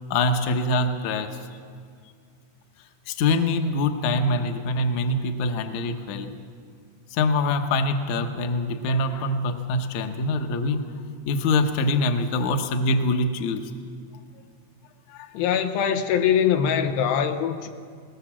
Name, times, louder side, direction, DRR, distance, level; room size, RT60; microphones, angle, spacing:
voice 1, 0.1-1.4 3.1-6.3 7.1-10.8 11.3-13.7 15.1-15.3, left 2 dB, 65° left, 2.1 m, -24 dB
voice 2, 15.3-17.7, left 8 dB, 85° left, 2.8 m, -22 dB
20.5 x 19.0 x 7.3 m
omnidirectional pair, 4.3 m